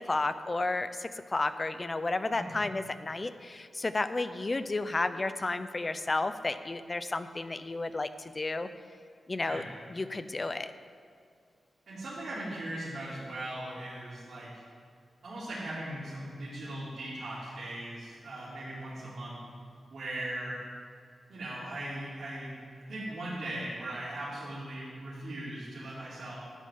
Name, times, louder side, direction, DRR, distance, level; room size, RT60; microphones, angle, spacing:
voice 1, 0.0-8.7 9.3-9.6 9.9-10.7, left 2 dB, 30° left, 11 dB, 0.5 m, -32 dB
voice 2, 2.3-2.6 9.4-9.6 11.9-14.5 15.2-19.4 19.9-20.6 21.3-22.5 22.9-26.3, right 1 dB, 65° right, -11 dB, 3.3 m, -39 dB
13.5 x 9.3 x 3.7 m, 2.2 s
wide cardioid pair, 105°, 0 cm